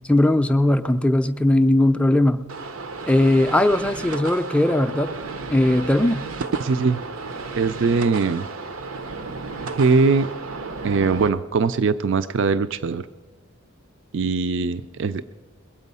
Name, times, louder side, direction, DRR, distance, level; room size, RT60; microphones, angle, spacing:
voice 1, 0.1-2.4 3.1-5.1 5.5-6.2, left 1 dB, 5° left, 8 dB, 0.4 m, -19 dB
sound 1, 2.5-11.3, right 3 dB, 85° right, 0.8 m, -33 dB
voice 2, 6.6-7.0 7.5-8.5 9.7-10.3 10.8-13.1 14.1-15.2, right 4 dB, 60° right, 13 dB, 0.4 m, -21 dB
22.0 x 8.2 x 5.5 m, 1.2 s
head